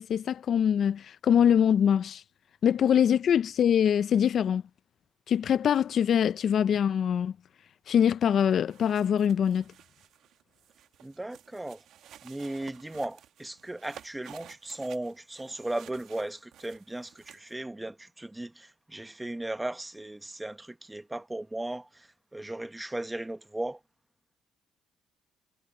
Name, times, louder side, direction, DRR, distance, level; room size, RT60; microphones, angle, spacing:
voice 1, 0.0-2.2 2.6-4.6 5.3-7.3 7.9-9.6, left 8 dB, 55° left, 0.4 m, -23 dB
sound 1, 8.4-17.5, right 11 dB, 75° right, 1.2 m, -54 dB
voice 2, 11.0-11.8 12.2-23.8, right 1 dB, 10° right, 1.0 m, -37 dB
cardioid pair, 100°, 0 cm